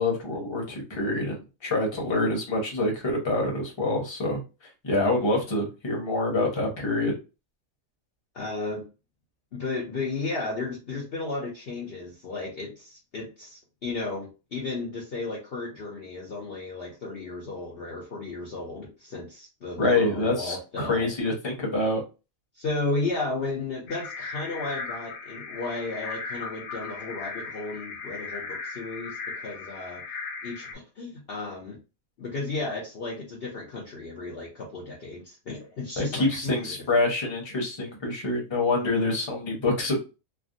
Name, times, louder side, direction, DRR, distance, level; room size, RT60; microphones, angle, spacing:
voice 1, 0.0-4.4 4.8-7.1 19.8-22.0 36.0-40.0, left 2 dB, 25° left, -1 dB, 0.8 m, -26 dB
voice 2, 8.3-8.9 9.5-21.1 22.6-30.0 30.4-31.8 32.2-36.9, left 3 dB, 55° left, -3 dB, 0.8 m, -34 dB
sound 1, 23.9-30.8, left 4 dB, 85° left, 1.1 m, -37 dB
3.3 x 2.1 x 2.5 m, 0.29 s
omnidirectional pair, 1.5 m